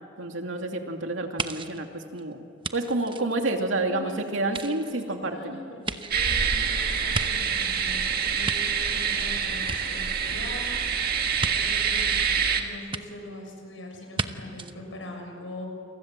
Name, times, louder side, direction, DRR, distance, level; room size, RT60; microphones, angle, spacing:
voice 1, 0.2-2.4 2.7-5.6, right 2 dB, 80° right, 4 dB, 2.6 m, -29 dB
sound 1, 1.4-4.0 4.4-7.8 8.2-9.3 9.6-10.5 11.4-11.5 12.9-13.0 14.1-14.3 14.6-14.7, right 4 dB, 25° right, 0.9 m, -35 dB
voice 2, 3.8-15.7, left 1 dB, 75° left, 2 dB, 6.7 m, -42 dB
sound 2, 6.1-12.6, right 6 dB, 50° right, 1.9 m, -26 dB
29.5 x 24.0 x 7.6 m, 2.5 s
head